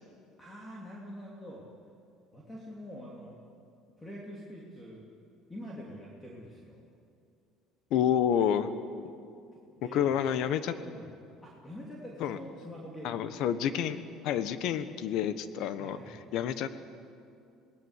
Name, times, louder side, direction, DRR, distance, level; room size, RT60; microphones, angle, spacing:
voice 1, 0.4-1.6 2.3-3.4 4.0-5.0 5.5-6.8 9.5-10.2 10.6-11.1 11.4-13.4 15.8-16.2, equal, 10° left, -3 dB, 3.0 m, -45 dB
voice 2, 7.9-8.7 9.9-10.7 12.2-12.4 13.0-14.0 14.2-16.7, left 9 dB, 65° left, 12 dB, 1.3 m, -29 dB
27.0 x 19.5 x 8.3 m, 2.5 s
cardioid pair, 145°, 0 cm